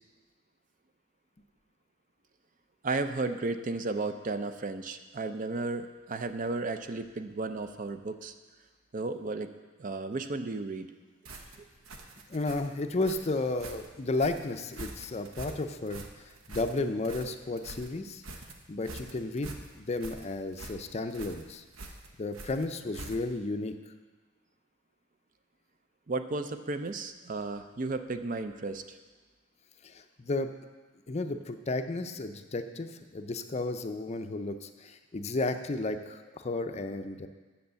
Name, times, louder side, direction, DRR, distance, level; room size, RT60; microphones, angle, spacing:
voice 1, 2.8-8.3 8.9-9.5 9.8-10.9 11.6-11.7 26.1-29.0, right 3 dB, 40° right, 9 dB, 0.5 m, -34 dB
sound 1, 11.2-23.5, right 2 dB, 90° right, 1.0 m, -46 dB
voice 2, 12.3-16.0 16.5-18.2 18.7-21.6 22.2-23.8 29.8-30.5 31.1-37.3, left 2 dB, 30° left, 8 dB, 0.5 m, -33 dB
7.9 x 7.0 x 6.9 m, 1.3 s
head